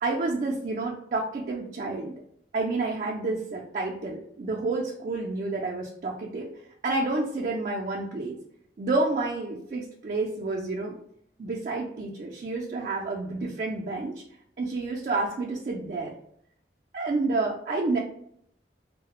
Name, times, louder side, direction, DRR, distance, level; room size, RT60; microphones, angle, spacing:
voice 1, 0.0-2.1 2.5-6.5 6.8-8.4 8.8-11.0 11.4-14.2 14.6-16.1 16.9-18.0, right 3 dB, 45° right, -2 dB, 0.3 m, -29 dB
2.3 x 2.0 x 2.9 m, 0.68 s
head